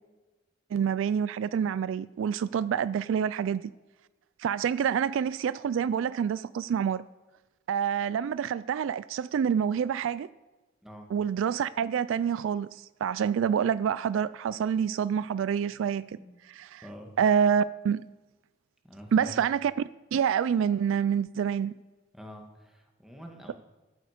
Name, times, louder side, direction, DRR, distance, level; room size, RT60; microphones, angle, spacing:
voice 1, 0.7-3.6 4.4-7.0 7.7-10.3 11.1-16.2 16.6-16.8 17.2-18.1 19.1-19.7 20.1-21.7, right 8 dB, 70° right, 0.3 m, -27 dB
voice 2, 16.8-17.1 18.8-19.4 22.1-23.5, equal, ahead, 1.7 m, -46 dB
13.5 x 7.9 x 5.0 m
head